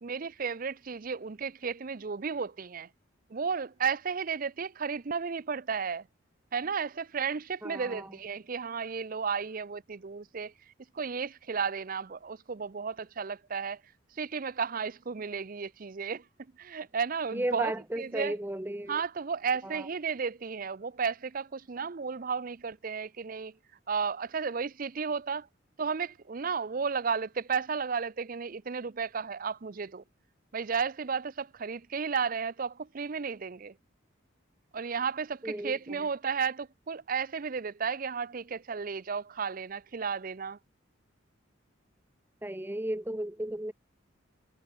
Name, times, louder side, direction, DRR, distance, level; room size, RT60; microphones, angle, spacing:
voice 1, 0.0-2.9 3.3-6.0 6.5-10.5 10.9-13.8 14.1-16.2 16.6-18.3 18.9-23.5 23.9-25.5 25.8-30.0 30.5-33.7 34.7-40.6, right 5 dB, 45° right, 0.5 m, -33 dB
voice 2, 7.6-8.1 17.3-19.0 19.6-19.9 35.4-36.0 42.4-43.7, right 1 dB, 10° right, 0.9 m, -34 dB
head